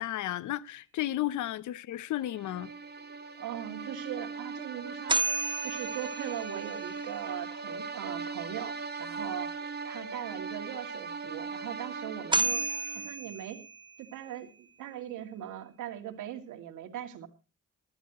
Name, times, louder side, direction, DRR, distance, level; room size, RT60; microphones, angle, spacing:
voice 1, 0.0-2.7, left 14 dB, 75° left, 0.8 m, -33 dB
sound 1, 2.2-13.2, right 4 dB, 35° right, 1.8 m, -39 dB
voice 2, 3.4-5.2 5.6-9.5 9.8-12.6 12.9-13.6 14.0-17.3, right 11 dB, 80° right, 2.4 m, -40 dB
sound 2, 4.9-7.0 11.9-12.0 12.3-14.2, right 3 dB, 15° right, 0.9 m, -32 dB
19.0 x 13.0 x 3.0 m
cardioid pair, 90°, 30 cm